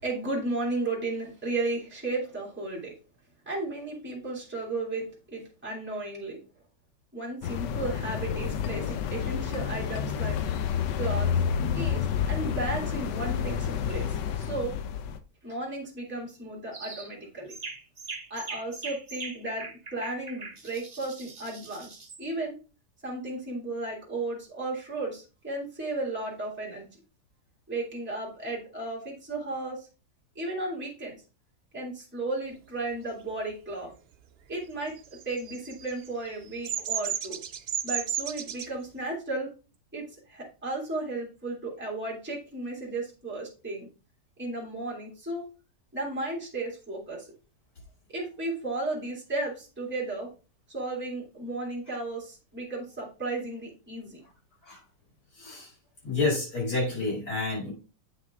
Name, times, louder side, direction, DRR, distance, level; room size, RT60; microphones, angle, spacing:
voice 1, 0.0-2.9 3.5-6.4 7.1-10.4 11.0-11.3 11.7-14.7 15.4-17.5 18.3-19.7 19.9-21.9 22.2-22.5 23.0-26.9 27.7-29.9 30.4-31.2 31.7-33.9 34.5-34.9 35.3-37.4 37.8-39.5 39.9-40.0 40.3-43.9 44.4-45.4 45.9-47.3 48.1-50.3 50.7-54.2, right 2 dB, 5° right, -4 dB, 2.3 m, -34 dB
sound 1, 7.4-15.2, left 8 dB, 85° left, 1.3 m, -29 dB
sound 2, 16.7-17.1 17.5-22.2, right 4 dB, 30° right, 0.8 m, -41 dB
Bird vocalization bird call bird song, 35.0-38.7, right 9 dB, 80° right, 0.5 m, -32 dB
voice 2, 55.4-55.7 56.0-57.7, left 3 dB, 70° left, -4 dB, 5.2 m, -29 dB
8.2 x 5.5 x 3.6 m, 0.34 s
omnidirectional pair, 1.8 m